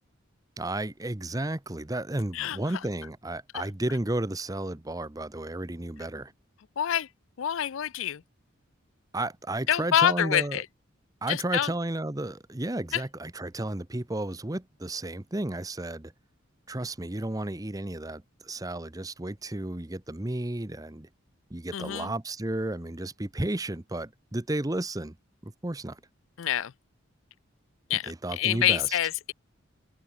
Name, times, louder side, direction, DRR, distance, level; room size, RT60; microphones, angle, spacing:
voice 1, 0.6-6.3 9.1-10.6 11.2-16.1 16.7-21.1 21.5-25.2 25.4-26.0 28.1-29.0, right 1 dB, 15° right, 0.8 m, -33 dB
voice 2, 6.8-7.1 7.4-8.2 9.7-10.6 11.3-11.7 12.9-13.0 21.7-22.1 26.4-26.7 27.9-29.3, left 10 dB, 70° left, 0.4 m, -26 dB
head